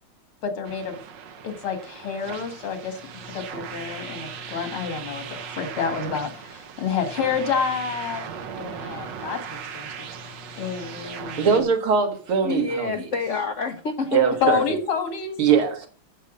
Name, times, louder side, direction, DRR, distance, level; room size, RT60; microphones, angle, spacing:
voice 1, 0.4-1.0 1.4-8.2 8.5-9.9 10.2-11.7 14.4-15.4, left 6 dB, 85° left, 2.9 m, -29 dB
sound 1, 0.6-11.6, right 6 dB, 60° right, 1.6 m, -38 dB
voice 2, 11.4-12.9 14.1-14.6 15.4-15.9, right 6 dB, 80° right, 2.5 m, -21 dB
voice 3, 12.4-14.5, left 4 dB, 65° left, 0.7 m, -28 dB
8.4 x 7.0 x 6.3 m
omnidirectional pair, 2.3 m